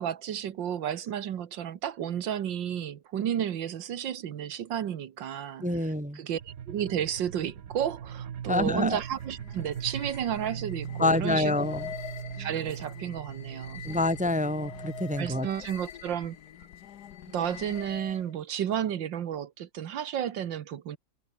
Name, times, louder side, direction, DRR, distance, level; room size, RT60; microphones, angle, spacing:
voice 1, 0.0-11.7 12.4-13.8 15.2-16.4 17.3-21.0, right 9 dB, 85° right, 1.9 m, -32 dB
voice 2, 5.6-6.2 8.5-9.0 11.0-11.9 13.8-15.5, left 2 dB, 10° right, 0.6 m, -27 dB
sound 1, 6.4-15.5, right 8 dB, 55° right, 1.4 m, -40 dB
sound 2, 8.6-18.4, left 10 dB, 65° left, 1.5 m, -44 dB
omnidirectional pair, 2.0 m